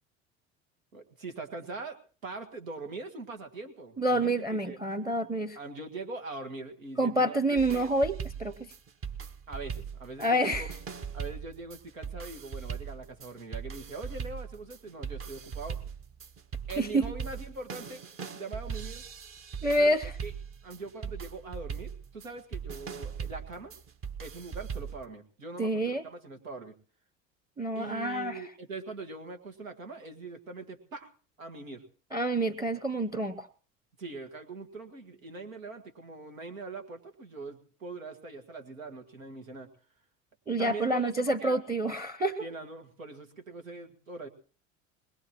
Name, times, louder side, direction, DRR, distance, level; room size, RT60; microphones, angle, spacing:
voice 1, 0.9-4.8 5.6-7.9 9.5-10.8 11.1-15.8 16.7-18.0 18.3-19.0 19.8-20.3 20.6-23.7 24.2-26.7 27.7-31.1 31.4-31.8 34.0-39.7 40.6-41.6 42.4-44.3, right 3 dB, 85° right, 6 dB, 1.9 m, -42 dB
voice 2, 4.0-5.6 7.0-8.7 10.2-10.7 16.8-17.1 19.6-20.0 25.6-26.0 27.6-28.4 32.1-33.5 40.5-42.4, right 1 dB, 10° right, 13 dB, 0.8 m, -28 dB
sound 1, 7.6-25.0, right 6 dB, 35° right, 1.1 m, -40 dB
21.5 x 20.5 x 3.0 m, 0.38 s
hypercardioid pair, 80°, 39 cm